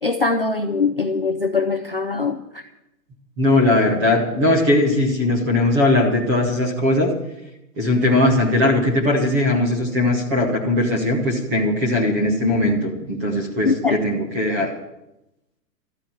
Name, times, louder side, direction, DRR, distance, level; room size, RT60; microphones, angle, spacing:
voice 1, 0.0-2.6 13.6-14.1, left 4 dB, 35° left, 4 dB, 0.5 m, -22 dB
voice 2, 3.4-7.1 7.8-14.7, left 1 dB, 10° right, 0 dB, 1.1 m, -19 dB
13.5 x 9.9 x 9.0 m, 0.90 s
hypercardioid pair, 180°, 49 cm